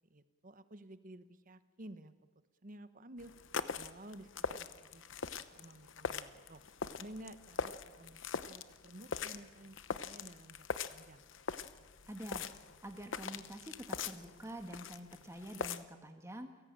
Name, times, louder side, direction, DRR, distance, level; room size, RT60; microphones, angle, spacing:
voice 1, 0.1-2.3 2.6-3.3 3.8-5.1 5.4-6.6 7.0-11.2, right 1 dB, 40° right, 12 dB, 1.2 m, -53 dB
sound 1, 3.2-15.8, left 5 dB, 65° left, 0.9 m, -42 dB
voice 2, 12.1-12.5 12.8-16.5, right 1 dB, 15° right, 5 dB, 1.6 m, -47 dB
29.5 x 17.0 x 9.0 m, 1.4 s
head